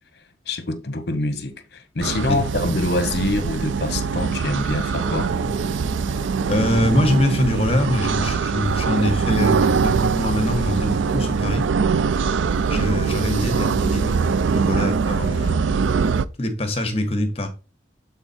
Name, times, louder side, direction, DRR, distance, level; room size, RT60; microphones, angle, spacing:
voice 1, 0.5-5.3, left 2 dB, 55° left, 0.9 m, -25 dB
sound 1, 2.0-16.3, right 5 dB, 85° right, 0.4 m, -22 dB
Thunder / Rain, 5.0-10.9, right 1 dB, 25° right, 0.7 m, -37 dB
voice 2, 6.5-11.7 12.7-15.8 16.4-17.5, left 1 dB, 30° left, 1.2 m, -23 dB
8.0 x 3.8 x 4.3 m
head